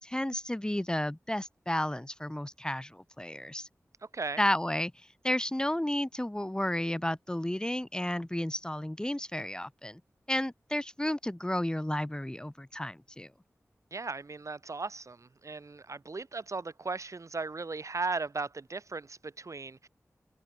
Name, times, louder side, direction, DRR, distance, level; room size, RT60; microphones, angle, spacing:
voice 1, 0.0-3.7 4.4-4.9 5.2-10.0 10.3-13.3, left 1 dB, 15° left, 2.5 m, -32 dB
voice 2, 13.9-19.9, right 3 dB, 65° right, 7.9 m, -37 dB
wide cardioid pair, 60°, 6 cm